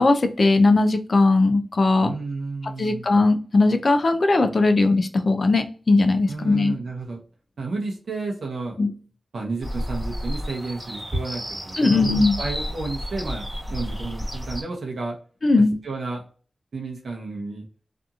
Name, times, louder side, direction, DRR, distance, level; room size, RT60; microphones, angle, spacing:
voice 1, 0.0-2.1 2.8-6.7 8.8-8.9 11.8-12.4 15.4-15.8, left 3 dB, 50° left, 7 dB, 0.4 m, -19 dB
voice 2, 2.0-3.0 6.3-7.2 7.6-8.8 9.3-15.2 15.8-16.2 16.7-17.6, right 3 dB, 85° right, 0 dB, 0.7 m, -32 dB
sound 1, 9.6-14.6, equal, 10° right, 1.4 m, -31 dB
2.8 x 2.5 x 2.3 m, 0.40 s
wide cardioid pair, 110°, 0 cm